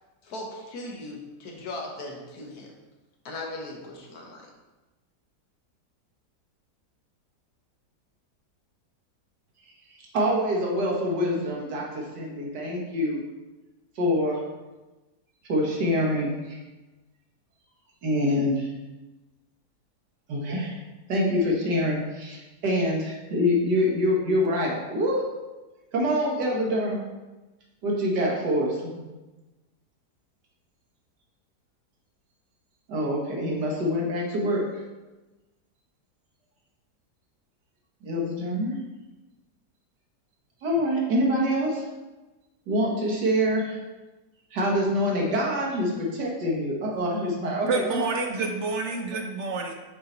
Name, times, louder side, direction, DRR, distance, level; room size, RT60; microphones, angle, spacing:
voice 1, 0.2-2.7 3.2-4.4, left 2 dB, 70° left, 0 dB, 1.6 m, -38 dB
voice 2, 9.7-13.2 14.0-14.4 15.4-16.6 18.0-18.7 20.3-20.8 21.1-25.2 25.9-27.0 27.8-29.1 32.9-34.8 38.0-38.8 40.6-41.9 42.7-43.8 44.5-48.2, equal, 85° right, -2 dB, 1.9 m, -25 dB
voice 3, 47.7-49.7, right 3 dB, 65° right, 3 dB, 0.7 m, -28 dB
6.7 x 4.3 x 3.9 m, 1.1 s
omnidirectional pair, 1.8 m